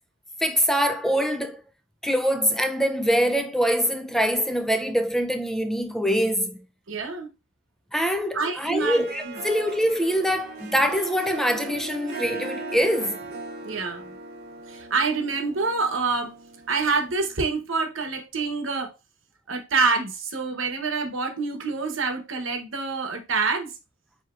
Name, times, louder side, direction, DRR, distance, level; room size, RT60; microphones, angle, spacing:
voice 1, 0.4-1.6 2.0-6.6 7.9-13.2, equal, ahead, 0.3 m, -24 dB
voice 2, 6.9-7.3 8.3-9.4 13.6-14.1 14.7-16.4 16.7-19.0 19.5-23.7, right 4 dB, 65° right, 1.0 m, -27 dB
Harp, 8.6-17.2, right 3 dB, 50° right, 0.6 m, -38 dB
7.7 x 2.9 x 2.4 m
head